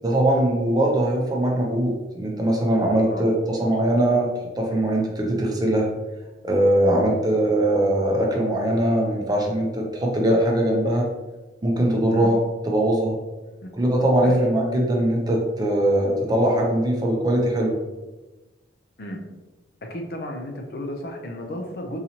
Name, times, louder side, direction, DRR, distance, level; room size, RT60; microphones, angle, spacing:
voice 1, 0.0-4.3 4.6-5.9 6.4-11.1 11.6-12.4 12.6-13.2 13.8-17.8, right 1 dB, 20° right, -1 dB, 0.5 m, -21 dB
voice 2, 19.8-22.0, left 1 dB, 55° left, 3 dB, 0.5 m, -34 dB
3.9 x 2.9 x 2.8 m, 1.1 s
head